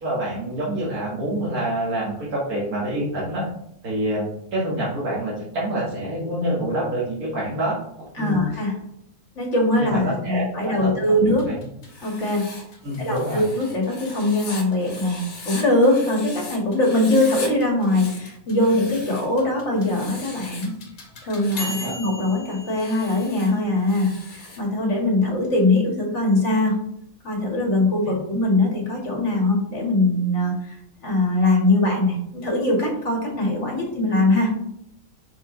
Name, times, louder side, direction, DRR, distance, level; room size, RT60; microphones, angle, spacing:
voice 1, 0.0-3.5 3.8-8.4 9.7-11.0 11.4-11.6 12.8-13.4 21.8-22.0, right 1 dB, 75° right, -7 dB, 2.3 m, -27 dB
voice 2, 8.1-8.7 9.4-11.5 12.0-12.5 13.0-20.7 21.2-26.8 27.2-30.8 31.0-34.5, left 2 dB, 50° left, -1 dB, 2.3 m, -21 dB
sound 1, 11.4-24.0, left 1 dB, 70° left, 2.0 m, -41 dB
Writing, 11.8-16.6 16.8-17.5 17.8-19.3 19.8-20.8 21.3-22.0 22.7-24.7, left 3 dB, 90° left, 2.0 m, -39 dB
6.0 x 5.1 x 3.9 m, 0.73 s
omnidirectional pair, 1.6 m